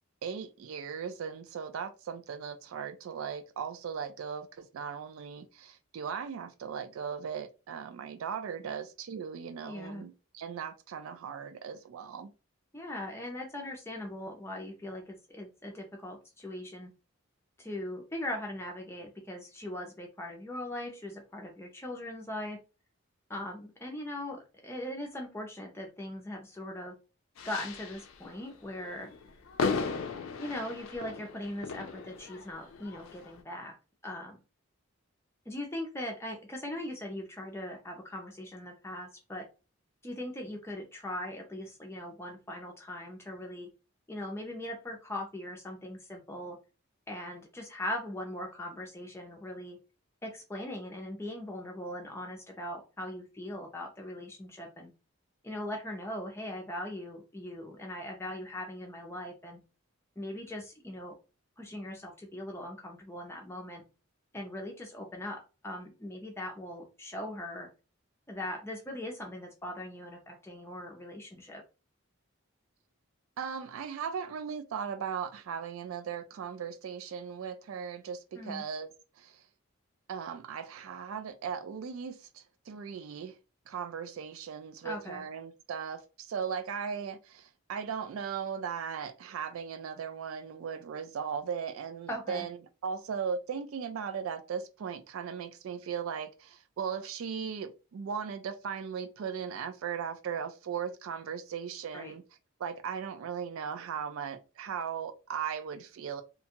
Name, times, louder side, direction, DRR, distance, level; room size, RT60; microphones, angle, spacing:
voice 1, 0.2-12.3 73.4-78.9 79.2-79.4 80.1-83.4 83.7-92.6 92.8-102.2 102.6-106.2, right 7 dB, 80° right, 0.3 m, -38 dB
voice 2, 9.6-10.0 12.7-16.9 17.6-22.6 23.3-27.0 27.4-29.1 30.4-33.7 34.0-34.4 35.5-39.5 40.0-43.7 44.1-46.6 47.1-49.8 50.2-54.9 55.4-59.6 60.2-61.2 61.6-63.8 64.3-67.7 68.3-71.6 78.3-78.6 84.8-85.2 92.1-92.5 101.9-102.1, left 1 dB, 10° left, 0.4 m, -40 dB
sound 1, 27.4-28.2 28.8-33.4, left 4 dB, 75° left, 0.4 m, -36 dB
2.7 x 2.2 x 2.8 m
head